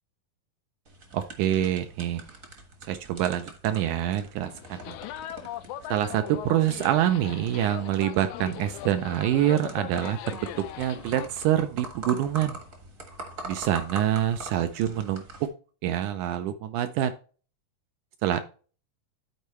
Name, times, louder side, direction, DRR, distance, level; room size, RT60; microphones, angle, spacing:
sound 1, 0.8-15.5, right 2 dB, 45° right, 1.1 m, -44 dB
voice 1, 1.1-2.2 2.9-5.0 5.9-12.6 13.5-15.5 15.8-17.1 18.2-18.4, right 11 dB, 80° right, 8 dB, 1.9 m, -26 dB
sound 2, 4.5-11.3, left 12 dB, 85° left, 1.7 m, -40 dB
12.0 x 4.5 x 3.1 m, 0.39 s
omnidirectional pair, 3.8 m